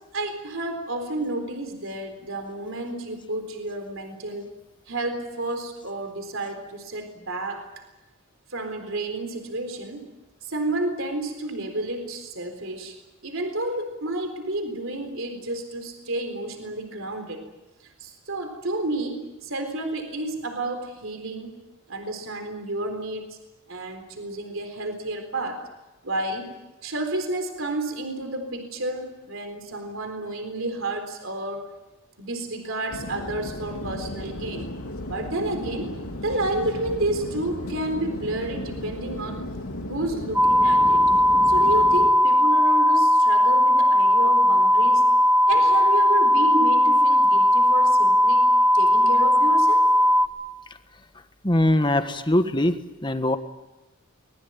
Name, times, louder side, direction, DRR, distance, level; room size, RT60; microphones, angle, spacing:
voice 1, 0.1-4.5 4.9-7.6 8.5-10.1 10.4-13.0 13.2-17.4 18.0-21.6 21.9-23.4 23.7-25.6 26.0-26.5 26.8-31.7 32.2-34.7 35.0-35.9 36.2-39.4 39.9-41.0 41.5-45.1 45.5-49.9, right 2 dB, 65° right, 6 dB, 4.0 m, -30 dB
sound 1, 32.9-42.1, left 1 dB, 80° left, 2.6 m, -35 dB
sound 2, 40.3-50.3, equal, 10° right, 2.0 m, -18 dB
voice 2, 51.4-53.4, left 1 dB, 20° left, 9 dB, 1.5 m, -22 dB
24.0 x 21.0 x 9.3 m, 1.0 s
head